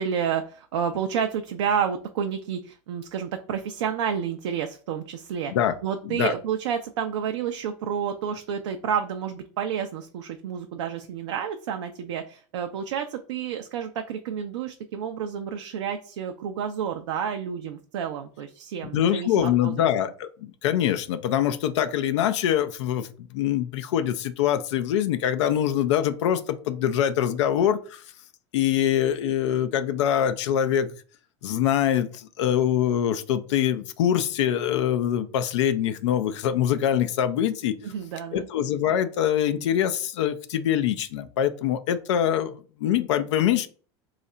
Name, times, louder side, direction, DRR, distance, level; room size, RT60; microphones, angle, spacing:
voice 1, 0.0-5.5 5.8-19.9 37.8-38.5, right 8 dB, 85° right, 5 dB, 0.4 m, -30 dB
voice 2, 18.9-28.0 28.5-30.9 31.4-37.7 38.3-43.7, left 10 dB, 85° left, 11 dB, 0.4 m, -24 dB
2.8 x 2.4 x 4.2 m, 0.41 s
hypercardioid pair, 100°, 15 cm